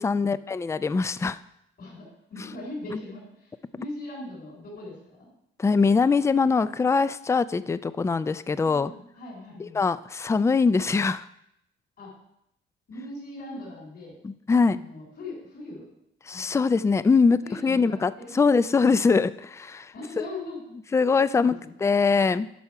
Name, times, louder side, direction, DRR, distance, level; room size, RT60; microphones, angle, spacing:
voice 1, 0.0-1.4 5.6-8.9 9.6-11.3 14.2-14.8 16.3-20.3 20.9-22.5, left 4 dB, 15° left, 15 dB, 0.3 m, -23 dB
voice 2, 1.8-5.3 8.6-9.8 12.0-12.1 12.9-14.2 14.7-15.9 16.3-16.6 17.4-18.4 18.8-19.1 19.9-20.6 21.3-21.6, left 2 dB, 55° left, -5 dB, 4.0 m, -40 dB
9.9 x 5.8 x 4.8 m, 0.78 s
cardioid pair, 90°, 20 cm